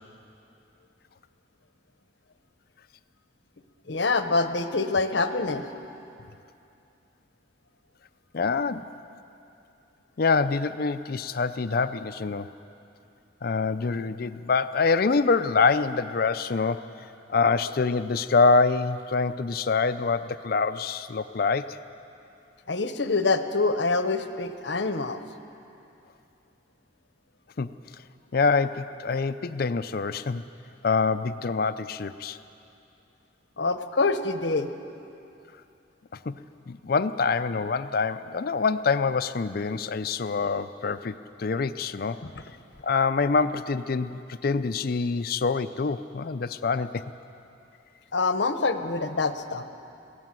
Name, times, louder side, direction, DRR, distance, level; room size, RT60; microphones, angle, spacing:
voice 1, 3.9-5.7 22.7-25.2 33.6-34.7 42.2-42.3 48.1-49.6, left 3 dB, 70° left, 9 dB, 1.0 m, -25 dB
voice 2, 8.3-8.9 10.2-12.5 13.4-16.9 17.3-21.8 27.6-27.7 28.3-30.4 30.8-32.4 36.3-36.4 36.7-42.2 42.8-47.0, left 4 dB, 55° left, 12 dB, 0.5 m, -25 dB
22.5 x 17.0 x 7.6 m, 2.7 s
head